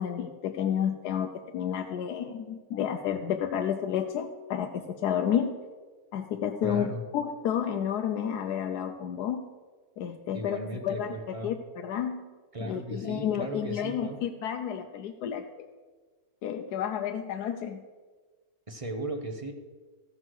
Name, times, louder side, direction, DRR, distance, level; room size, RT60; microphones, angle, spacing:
voice 1, 0.0-5.6 6.1-9.5 10.0-12.3 12.6-15.7 16.4-17.8, left 9 dB, 85° left, 5 dB, 1.2 m, -31 dB
voice 2, 6.6-7.0 10.3-11.6 12.5-14.2 18.7-19.5, right 1 dB, 25° right, 5 dB, 0.8 m, -36 dB
14.5 x 6.3 x 6.1 m, 1.4 s
omnidirectional pair, 1.7 m